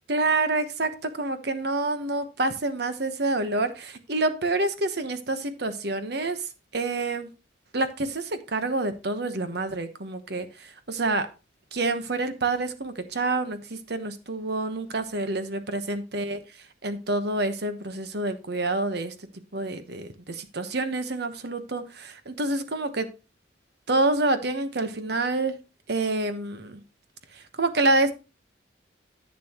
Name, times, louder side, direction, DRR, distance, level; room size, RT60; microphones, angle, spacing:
voice 1, 0.1-7.3 7.7-11.3 11.7-16.4 16.8-19.1 19.5-23.1 23.9-25.6 25.9-26.8 27.3-28.1, right 2 dB, 55° right, 1.1 m, -27 dB
11.0 x 8.5 x 3.0 m
head